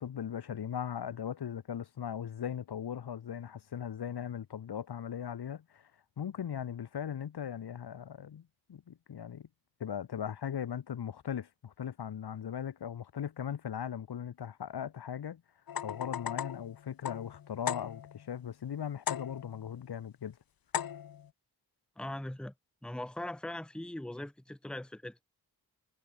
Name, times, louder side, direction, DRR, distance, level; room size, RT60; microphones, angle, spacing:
voice 1, 0.0-5.9 6.2-9.5 9.8-15.4 15.8-20.4, left 8 dB, 80° left, 1.2 m, -39 dB
sound 1, 15.7-18.3 19.1-19.7 20.7-21.3, left 9 dB, 65° left, 0.7 m, -38 dB
voice 2, 22.0-22.5 22.8-25.2, left 1 dB, ahead, 1.0 m, -40 dB
wide cardioid pair, 125°, 39 cm